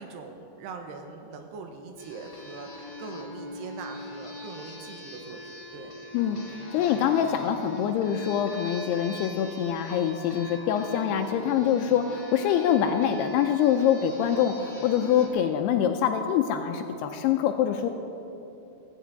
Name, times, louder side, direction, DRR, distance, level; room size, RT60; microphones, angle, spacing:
voice 1, 0.0-5.9, right 4 dB, 75° right, 4 dB, 2.9 m, -42 dB
sound 1, 2.0-15.3, equal, 40° left, 0.9 m, -41 dB
voice 2, 6.7-17.9, left 9 dB, 80° left, 6 dB, 2.4 m, -25 dB
17.0 x 15.5 x 4.0 m, 2.9 s
omnidirectional pair, 5.1 m